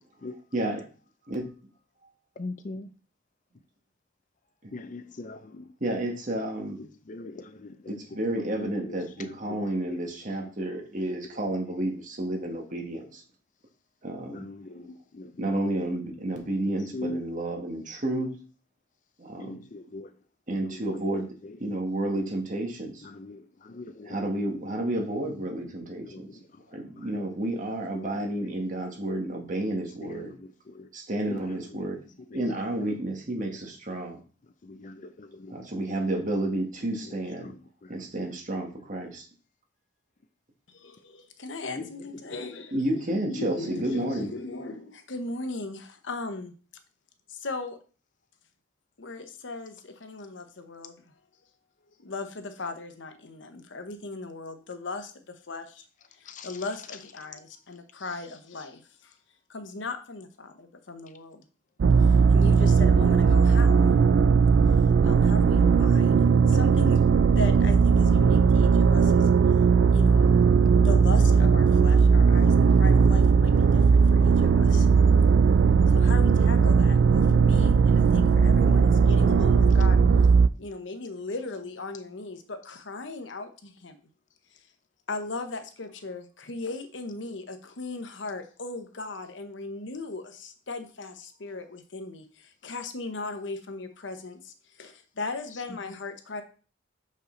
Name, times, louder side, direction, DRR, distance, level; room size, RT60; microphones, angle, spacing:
voice 1, 2.4-2.9 4.7-5.7 7.1-7.9 8.5-9.6 14.3-15.7 16.9-17.2 19.4-20.1 20.5-20.9 23.1-24.2 26.0-26.2 27.9-28.1 28.6-28.7 30.1-30.9 31.3-31.4 31.7-31.8 34.6-35.5 37.4-37.5 41.7-41.9 56.3-56.5, left 2 dB, 45° left, 0.5 m, -41 dB
voice 2, 5.8-6.8 7.9-13.2 14.0-14.4 15.4-18.3 19.2-19.6 20.5-21.3 21.6-23.0 24.0-26.3 26.7-30.3 30.9-32.0 32.3-34.2 35.5-37.5 37.9-39.2 42.7-44.3, right 1 dB, 45° right, 1.6 m, -31 dB
voice 3, 40.7-42.8 43.2-46.5 47.3-47.8 49.0-50.9 52.0-55.8 56.2-59.1 59.5-61.5 62.0-63.9 65.0-69.3 69.9-70.3 70.8-74.9 75.9-80.0 80.6-84.0 84.5-84.6 85.1-96.4, left 3 dB, 80° left, 1.0 m, -38 dB
sound 1, 61.8-80.5, right 5 dB, 75° right, 0.4 m, -18 dB
6.5 x 5.4 x 3.9 m
head